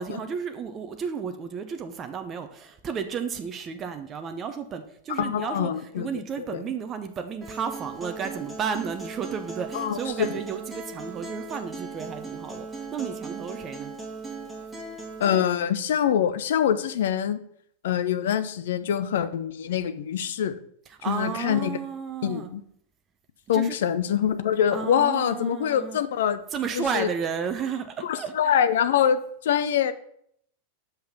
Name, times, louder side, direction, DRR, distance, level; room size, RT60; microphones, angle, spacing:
voice 1, 0.0-13.9 20.9-22.5 23.5-23.8 24.7-26.0 26.5-28.5, right 6 dB, 25° right, 7 dB, 0.7 m, -33 dB
voice 2, 5.2-6.1 9.7-10.3 15.2-17.4 17.8-20.5 21.1-21.8 22.2-22.6 23.5-26.4 26.8-27.1 28.0-29.9, left 9 dB, 60° left, 11 dB, 0.6 m, -24 dB
Acoustic guitar, 7.4-15.4, right 4 dB, 5° right, 2.4 m, -38 dB
5.8 x 5.6 x 6.7 m, 0.69 s
figure-of-eight pair, 90°, 0 cm